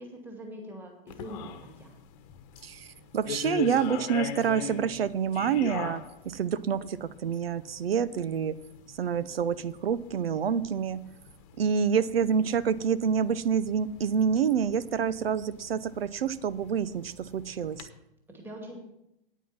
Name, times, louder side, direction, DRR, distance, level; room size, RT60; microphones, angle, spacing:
voice 1, 0.0-1.9 18.3-18.8, equal, 5° right, 1 dB, 2.2 m, -43 dB
sound 1, 1.1-17.9, left 8 dB, 40° left, 1.1 m, -43 dB
voice 2, 3.1-8.5 8.9-11.0 11.6-17.9, right 7 dB, 75° right, 17 dB, 0.7 m, -27 dB
9.3 x 9.1 x 5.9 m, 0.84 s
hypercardioid pair, 120°, 30 cm